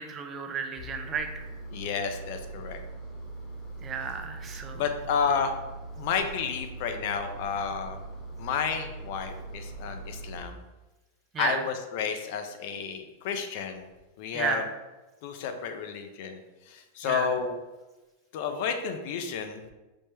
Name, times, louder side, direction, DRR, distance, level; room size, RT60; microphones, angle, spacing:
voice 1, 0.0-1.5 3.8-4.8 11.3-11.6 14.3-14.7 17.0-17.3, right 6 dB, 30° right, 6 dB, 0.4 m, -33 dB
Engine, 0.8-10.4, right 2 dB, 15° left, 0.8 m, -41 dB
voice 2, 1.7-2.8 4.8-5.5 6.0-8.0 8.4-10.6 11.4-13.9 14.2-14.6 15.2-16.4 16.7-17.6 18.3-19.7, left 6 dB, 60° left, 6 dB, 0.4 m, -31 dB
3.2 x 2.0 x 3.2 m, 1.1 s
hypercardioid pair, 110°, 0 cm